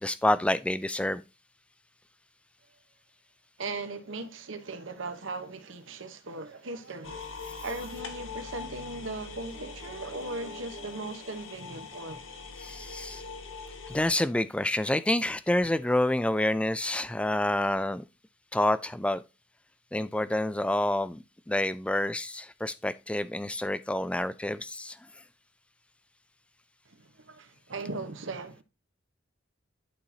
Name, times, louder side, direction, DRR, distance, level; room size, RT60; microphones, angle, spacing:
voice 1, 0.0-1.2 12.6-13.2 13.9-18.0 18.5-19.2 19.9-25.0, left 1 dB, 5° left, 0.3 m, -28 dB
voice 2, 3.6-7.3 7.6-12.2 13.1-13.2 26.9-28.6, right 3 dB, 85° right, 1.0 m, -38 dB
sound 1, 7.0-14.1, left 4 dB, 85° left, 1.4 m, -42 dB
11.5 x 4.2 x 2.8 m
head